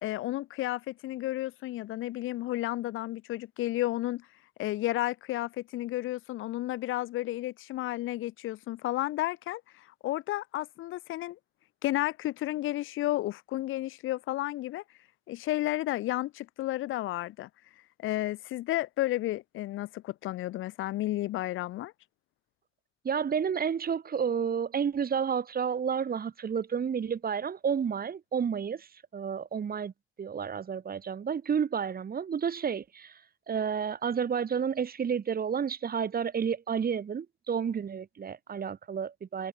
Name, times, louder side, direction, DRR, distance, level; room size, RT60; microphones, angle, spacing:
voice 1, 0.0-4.3 4.6-11.4 11.8-14.8 15.3-17.5 18.0-21.9, left 16 dB, 90° left, 2.9 m, -32 dB
voice 2, 23.0-29.9 30.2-33.2 33.5-39.5, right 7 dB, 50° right, 5.6 m, -31 dB
cardioid pair, 90°, 20 cm